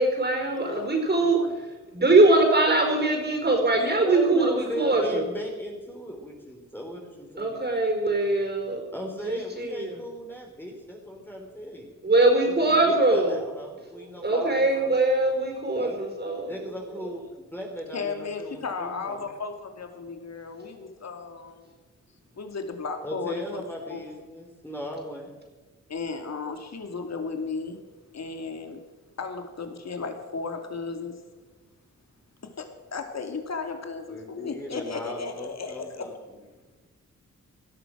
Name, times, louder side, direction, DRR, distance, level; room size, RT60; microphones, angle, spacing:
voice 1, 0.0-1.4 1.9-5.2 7.4-8.8 9.2-10.0 12.0-13.4 14.2-16.5, right 2 dB, 35° right, 3 dB, 4.9 m, -22 dB
voice 2, 0.6-1.8 17.9-21.7 22.3-24.0 25.9-27.8 28.1-28.8 29.2-31.2 32.4-36.1, left 4 dB, 60° left, 5 dB, 2.5 m, -35 dB
voice 3, 3.7-7.7 8.9-12.0 12.4-15.0 15.7-16.0 16.5-19.3 23.0-25.3 34.1-36.4, equal, 5° left, 0 dB, 3.4 m, -37 dB
18.5 x 12.5 x 6.3 m, 1.2 s
cardioid pair, 80°, 30 cm